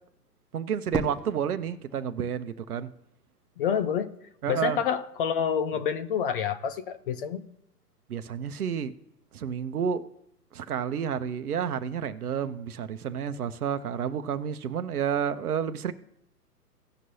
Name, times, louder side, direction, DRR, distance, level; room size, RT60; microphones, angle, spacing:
voice 1, 0.5-2.9 4.4-4.8 8.1-8.9 9.3-10.0 10.5-15.9, right 8 dB, 65° right, 0.9 m, -30 dB
Fireworks, 0.9-3.1, right 3 dB, ahead, 0.6 m, -37 dB
voice 2, 3.6-4.1 4.5-7.4, left 8 dB, 35° left, 0.7 m, -28 dB
18.0 x 6.1 x 2.8 m
figure-of-eight pair, 125°, 48 cm